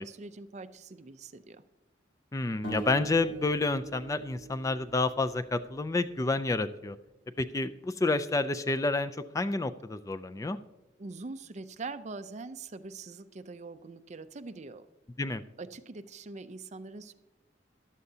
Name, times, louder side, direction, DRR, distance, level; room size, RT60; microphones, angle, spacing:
voice 1, 0.0-1.6 11.0-14.9 15.6-17.1, right 3 dB, 40° right, 11 dB, 0.5 m, -43 dB
voice 2, 2.3-7.0 7.4-10.6 15.2-15.4, left 3 dB, 20° left, 11 dB, 0.3 m, -29 dB
sound 1, 2.6-5.8, right 4 dB, 75° left, 2.8 m, -42 dB
14.5 x 11.0 x 2.8 m, 0.94 s
head